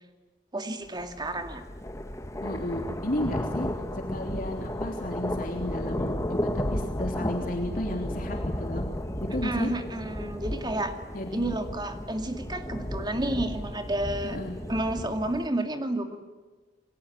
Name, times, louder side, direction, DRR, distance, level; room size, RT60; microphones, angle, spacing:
voice 1, 0.5-1.6 9.4-11.0 11.3-14.4 14.7-16.2, right 1 dB, 25° right, 6 dB, 2.4 m, -31 dB
sound 1, 1.0-15.5, left 1 dB, 15° left, 1.5 m, -33 dB
voice 2, 2.4-3.7 4.1-8.8 9.2-9.7 11.1-11.5 14.3-14.6, left 1 dB, 50° left, 2 dB, 3.2 m, -33 dB
29.0 x 21.5 x 9.3 m, 1.3 s
head